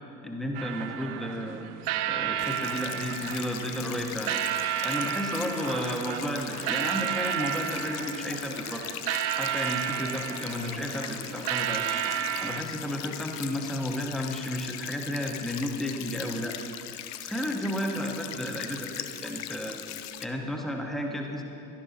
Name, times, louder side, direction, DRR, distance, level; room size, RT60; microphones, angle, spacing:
voice 1, 0.2-1.6 2.0-4.4 4.8-8.8 9.4-11.9 12.4-16.6 17.2-19.8 20.2-21.4, equal, ahead, 1 dB, 1.2 m, -32 dB
sound 1, 0.5-12.6, right 10 dB, 45° right, 0.6 m, -32 dB
sound 2, 2.4-20.2, left 12 dB, 40° left, 0.5 m, -40 dB
16.5 x 12.0 x 2.8 m, 2.9 s
figure-of-eight pair, 65°, 46 cm